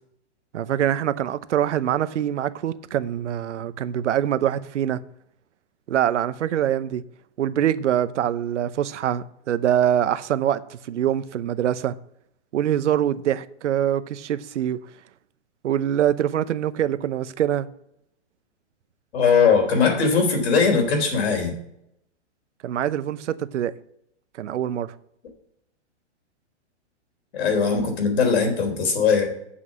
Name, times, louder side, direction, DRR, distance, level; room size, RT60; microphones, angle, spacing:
voice 1, 0.5-5.0 5.9-7.0 7.4-11.9 12.5-14.8 15.6-17.7 22.6-23.8 24.4-24.9, right 10 dB, 90° right, 0.8 m, -24 dB
voice 2, 19.1-21.5 27.3-29.3, left 5 dB, 60° left, 3.8 m, -20 dB
7.8 x 6.3 x 7.5 m
hypercardioid pair, 160°, 35 cm